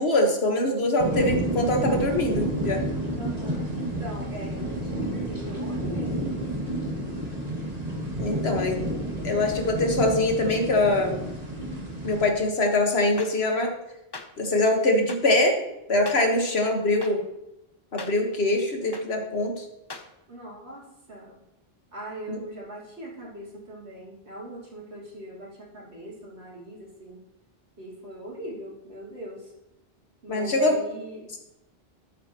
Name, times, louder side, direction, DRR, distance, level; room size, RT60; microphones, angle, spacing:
voice 1, 0.0-2.8 8.2-8.9 9.2-11.2 12.0-13.7 14.4-15.6 15.9-17.2 17.9-19.6 22.3-22.4 30.3-30.8, left 2 dB, 80° left, 3 dB, 1.7 m, -23 dB
sound 1, 1.0-12.3, right 1 dB, 40° right, 2.1 m, -30 dB
voice 2, 3.2-6.5 20.3-21.4 21.9-27.2 27.8-29.5 30.2-31.3, right 1 dB, 85° right, -4 dB, 3.1 m, -40 dB
sound 2, 13.2-13.3 14.1-14.3 15.1-15.2 16.1-16.2 17.0-17.1 18.0-18.1 18.9-19.0 19.9-20.0, left 3 dB, 25° left, 0.7 m, -37 dB
12.5 x 8.4 x 3.0 m, 0.89 s
omnidirectional pair, 1.0 m